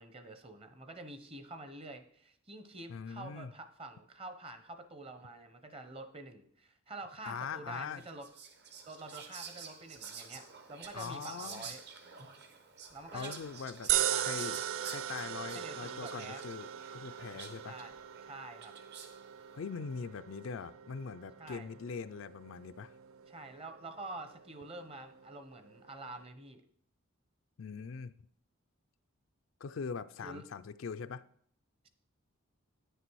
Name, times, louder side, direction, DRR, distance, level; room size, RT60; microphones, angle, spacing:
voice 1, 0.0-8.3 8.9-11.8 12.9-13.4 13.9-14.4 15.5-16.4 17.6-17.9 18.2-18.7 21.4-21.7 23.3-26.6 30.2-30.4, right 2 dB, 25° right, 9 dB, 0.8 m, -47 dB
voice 2, 2.9-3.5 7.3-8.0 10.9-11.7 13.1-17.8 19.5-22.9 27.6-28.1 29.6-31.2, left 5 dB, 60° left, 12 dB, 0.4 m, -42 dB
Whispering, 7.9-19.3, right 6 dB, 50° right, 1.1 m, -50 dB
sound 1, 13.9-26.2, right 11 dB, 70° right, 0.4 m, -39 dB
9.2 x 6.7 x 4.6 m, 0.64 s
head